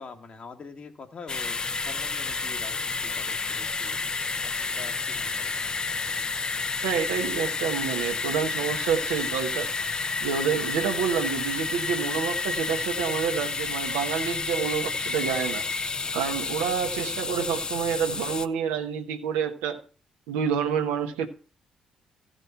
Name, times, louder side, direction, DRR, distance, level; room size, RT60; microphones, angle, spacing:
voice 1, 0.0-4.1 4.4-5.6 16.0-16.1, left 4 dB, 50° left, 1.7 m, -45 dB
sound 1, 1.3-18.5, left 4 dB, 35° left, 0.6 m, -30 dB
voice 2, 6.8-9.7 10.2-15.6 16.1-19.8 20.3-21.3, right 7 dB, 90° right, 1.2 m, -28 dB
14.5 x 5.1 x 5.7 m
hypercardioid pair, 55°, 2 cm